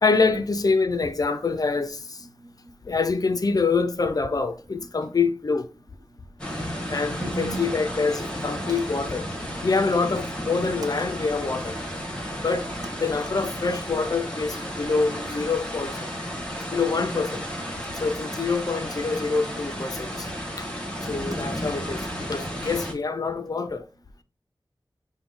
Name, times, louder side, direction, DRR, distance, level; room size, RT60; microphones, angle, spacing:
voice 1, 0.0-2.2 2.9-5.7 6.9-9.3 9.6-11.8 12.4-12.6 13.0-16.0 16.6-17.3 18.0-20.3 20.6-20.7 21.1-23.9, left 4 dB, 50° left, 0.4 m, -25 dB
voice 2, 2.2-2.7 5.0-5.1 7.2-7.7 17.0-17.3 21.5-21.9, right 3 dB, 50° right, 0.9 m, -38 dB
sound 1, 6.4-22.9, equal, 10° left, 1.2 m, -33 dB
5.9 x 2.1 x 3.6 m
wide cardioid pair, 75°, 8 cm